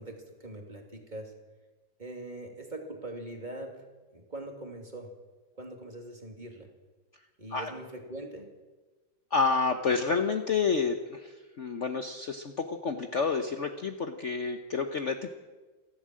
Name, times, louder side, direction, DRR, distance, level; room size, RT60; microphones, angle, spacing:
voice 1, 0.0-1.3 2.0-3.9 4.1-5.1 5.6-6.7 7.4-8.5, right 1 dB, 25° right, 2 dB, 2.7 m, -42 dB
voice 2, 9.3-15.3, left 5 dB, 45° left, 6 dB, 1.1 m, -29 dB
28.5 x 12.0 x 7.6 m, 1.3 s
omnidirectional pair, 2.0 m